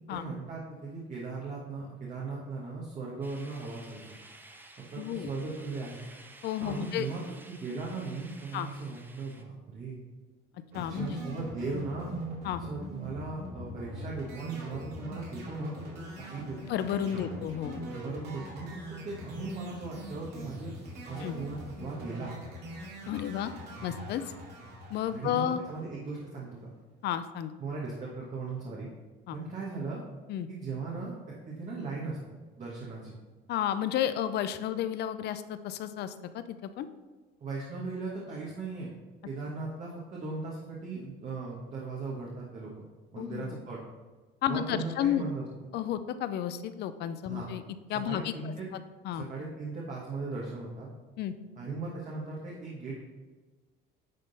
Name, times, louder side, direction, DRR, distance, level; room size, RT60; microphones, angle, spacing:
voice 1, 0.1-4.0 4.8-6.0 6.6-10.0 10.9-12.1 12.5-15.7 16.2-16.6 17.1-17.3 17.8-18.8 19.0-20.7 21.1-22.3 25.1-26.7 27.6-28.9 29.3-30.0 30.5-33.2 37.4-38.9 39.2-42.7 43.1-43.8 44.5-45.4 47.2-47.5 48.1-48.7 49.1-50.9 51.6-53.0, right 3 dB, 40° right, -4 dB, 1.4 m, -38 dB
sound 1, 3.2-9.4, right 2 dB, 10° right, 0.6 m, -53 dB
voice 2, 5.0-5.3 6.4-7.1 8.5-8.7 10.7-11.2 12.4-12.6 16.7-17.9 21.2-21.3 23.1-23.5 23.8-24.2 24.9-25.6 27.0-27.5 29.3-29.4 30.3-30.5 33.5-36.9 43.2-43.6 44.4-45.3 45.7-47.6 47.9-48.5 49.0-49.3 51.2-51.3, left 10 dB, 60° left, 12 dB, 0.5 m, -32 dB
sound 2, 10.7-26.1, equal, 60° right, 2.3 m, -42 dB
10.5 x 3.7 x 4.0 m, 1.3 s
cardioid pair, 130°, 20 cm